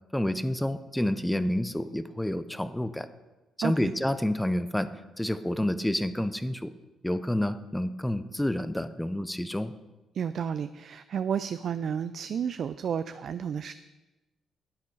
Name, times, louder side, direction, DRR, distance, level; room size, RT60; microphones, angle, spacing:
voice 1, 0.1-3.1 3.6-4.9 5.2-6.7 7.0-9.7, left 1 dB, 5° left, 12 dB, 0.5 m, -29 dB
voice 2, 3.6-3.9 10.1-13.7, right 7 dB, 60° right, 12 dB, 0.3 m, -31 dB
9.9 x 8.4 x 4.6 m, 1.1 s
cardioid pair, 90°, 0 cm